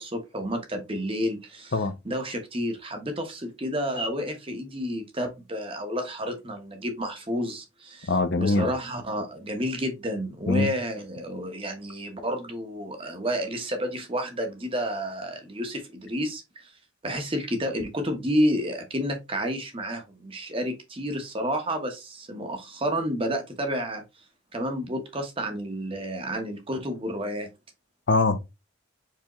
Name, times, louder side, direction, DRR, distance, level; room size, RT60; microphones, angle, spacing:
voice 1, 0.0-1.7 2.0-8.1 8.4-16.7 17.0-24.0 24.5-27.5, equal, 25° right, 1.0 m, -30 dB
voice 2, 8.1-8.7 10.5-10.7 28.1-28.4, left 3 dB, 55° left, 0.6 m, -22 dB
4.8 x 3.5 x 3.0 m
head